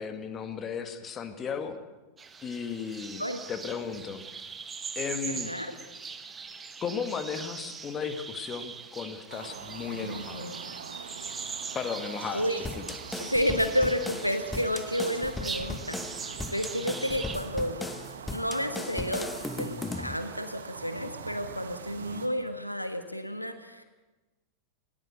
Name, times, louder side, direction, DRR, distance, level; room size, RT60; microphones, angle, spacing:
voice 1, 0.0-1.8 2.4-3.2 3.5-4.2 5.0-5.5 6.8-10.5 11.7-12.5 12.8-12.9 22.0-22.2, left 6 dB, 25° left, 7 dB, 2.0 m, -35 dB
sound 1, 2.2-17.4, right 5 dB, 15° right, 1.4 m, -41 dB
voice 2, 5.3-5.7 9.9-10.6 12.3-12.7 13.2-17.8 18.3-23.8, equal, 90° left, 8 dB, 1.5 m, -31 dB
sound 2, 9.3-22.3, right 6 dB, 65° right, 1.6 m, -44 dB
sound 3, 12.6-20.2, left 2 dB, 5° left, 1.0 m, -38 dB
20.0 x 18.0 x 8.2 m, 1.1 s
figure-of-eight pair, 90°, 0 cm